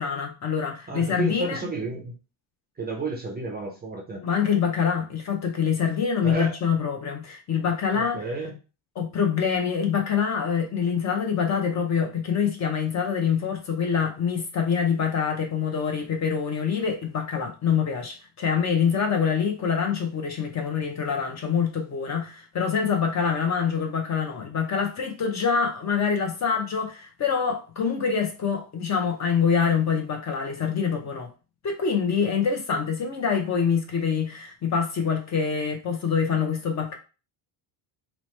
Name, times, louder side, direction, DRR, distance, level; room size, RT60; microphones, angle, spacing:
voice 1, 0.0-1.6 4.2-8.2 9.0-31.3 31.6-36.9, left 6 dB, 35° left, 0.5 m, -25 dB
voice 2, 0.9-2.1 2.8-4.2 6.2-6.5 7.9-8.5, right 3 dB, 20° right, 0.4 m, -32 dB
2.9 x 2.0 x 3.1 m
cardioid pair, 140°, 48 cm